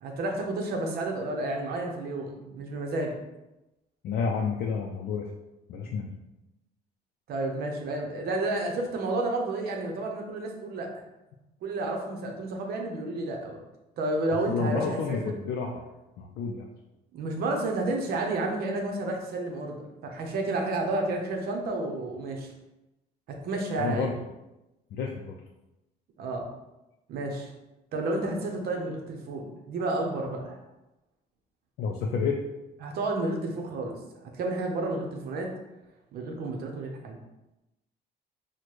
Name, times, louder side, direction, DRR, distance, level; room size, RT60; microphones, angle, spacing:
voice 1, 0.0-3.2 7.3-11.0 11.6-13.6 14.0-15.3 17.1-19.8 20.0-22.5 23.3-24.1 26.2-26.5 27.1-27.5 27.9-30.6 32.8-33.9 34.2-35.5 36.1-37.2, right 2 dB, 65° right, 1 dB, 0.7 m, -31 dB
voice 2, 4.0-5.3 5.7-6.1 14.5-15.8 16.2-16.7 23.8-24.1 24.9-25.3 31.8-32.4, left 5 dB, 65° left, 0 dB, 0.4 m, -30 dB
4.2 x 2.2 x 3.1 m, 0.97 s
cardioid pair, 110°, 17 cm